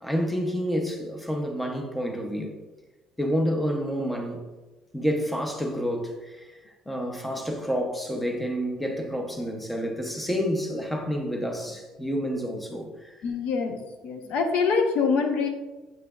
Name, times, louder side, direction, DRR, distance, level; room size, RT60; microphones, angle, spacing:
voice 1, 0.0-2.5 3.2-4.5 4.9-13.2, equal, 5° left, 0.5 m, -29 dB
voice 2, 13.2-13.8 14.0-15.5, left 5 dB, 55° left, 0.8 m, -24 dB
7.4 x 5.5 x 2.3 m
cardioid pair, 180°, 2 cm